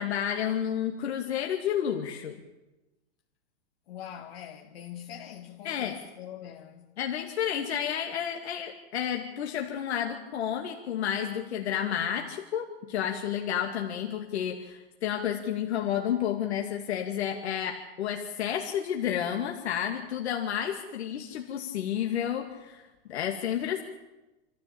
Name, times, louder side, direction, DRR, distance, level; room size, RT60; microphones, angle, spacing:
voice 1, 0.0-2.3 5.6-6.0 7.0-23.8, left 9 dB, 85° left, 2.4 m, -31 dB
voice 2, 3.9-6.9, left 10 dB, 65° left, 2.1 m, -43 dB
26.0 x 14.5 x 8.7 m
supercardioid pair, 150°, 32 cm